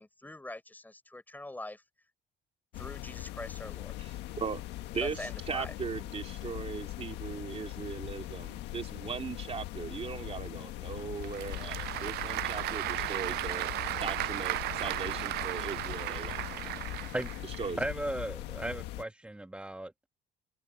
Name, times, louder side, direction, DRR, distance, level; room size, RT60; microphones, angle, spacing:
voice 1, 0.0-1.8 2.8-4.0 5.0-5.7, left 2 dB, 10° left, 5.1 m, -43 dB
sound 1, 2.7-19.0, left 16 dB, 90° left, 1.6 m, -41 dB
voice 2, 4.0-13.7 14.0-16.4 17.4-17.8, right 6 dB, 35° right, 2.5 m, -39 dB
Applause / Crowd, 11.0-17.7, right 17 dB, 75° right, 0.4 m, -35 dB
voice 3, 17.8-20.1, right 1 dB, 5° right, 1.9 m, -36 dB
cardioid pair, 110°, 17 cm